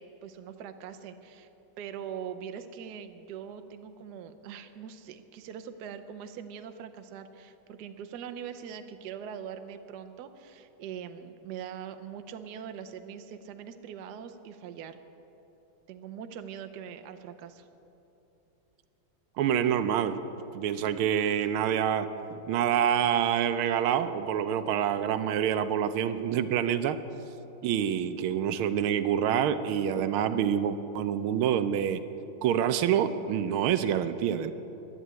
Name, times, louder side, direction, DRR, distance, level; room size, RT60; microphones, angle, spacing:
voice 1, 0.0-1.5 1.8-15.0 15.9-17.7, right 8 dB, 65° right, 9 dB, 1.1 m, -42 dB
voice 2, 19.4-20.2 20.5-22.1 22.5-27.0 27.6-32.0 32.4-34.5, right 9 dB, 85° right, 11 dB, 1.5 m, -27 dB
11.0 x 11.0 x 8.7 m, 3.0 s
omnidirectional pair, 2.3 m